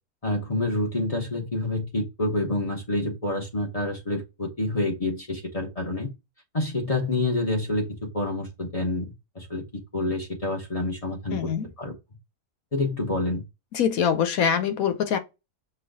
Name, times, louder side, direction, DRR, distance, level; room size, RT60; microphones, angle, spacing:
voice 1, 0.2-6.1 6.5-7.8 8.1-11.5 11.8-11.9 12.7-13.4, left 2 dB, 25° left, 1.1 m, -28 dB
voice 2, 11.3-11.7 13.7-15.2, left 8 dB, 75° left, 1.2 m, -24 dB
5.6 x 2.4 x 3.9 m
omnidirectional pair, 1.5 m